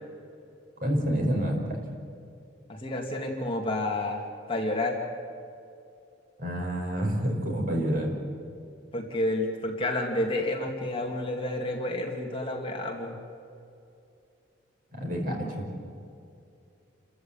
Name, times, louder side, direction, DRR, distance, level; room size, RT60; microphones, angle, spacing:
voice 1, 0.8-1.8 6.4-8.2 14.9-15.7, equal, 45° right, 0 dB, 5.0 m, -28 dB
voice 2, 2.7-4.2 4.5-5.0 8.9-13.2, left 1 dB, 25° left, 1 dB, 2.4 m, -30 dB
29.0 x 14.0 x 9.0 m, 2.6 s
head